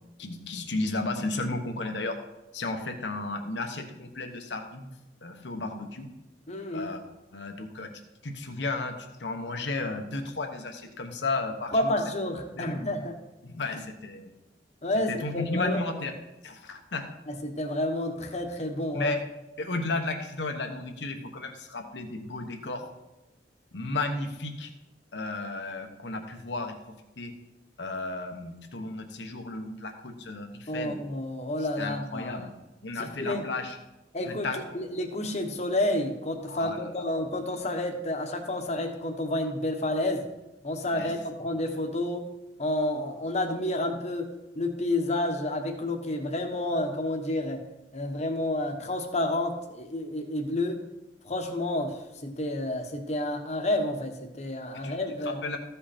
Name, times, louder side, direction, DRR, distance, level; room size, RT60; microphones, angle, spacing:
voice 1, 0.2-2.2 2.5-4.9 5.2-6.1 6.7-7.9 8.2-11.9 12.5-12.9 13.4-14.3 15.1-16.1 16.4-17.1 18.9-19.2 19.6-22.9 23.7-24.7 25.1-26.8 27.2-27.3 27.8-31.0 31.6-32.5 32.8-33.8 34.3-34.6 36.5-37.0 40.9-41.1 54.8-55.0 55.2-55.6, left 3 dB, 70° left, 5 dB, 1.1 m, -33 dB
voice 2, 6.5-6.9 11.7-13.2 13.6-13.8 14.8-16.0 17.3-19.1 30.7-32.5 32.9-33.4 34.1-40.3 40.6-42.2 42.6-47.6 47.9-50.8 51.2-55.4, left 1 dB, 40° left, 4 dB, 1.2 m, -30 dB
14.5 x 5.6 x 4.3 m, 0.97 s
head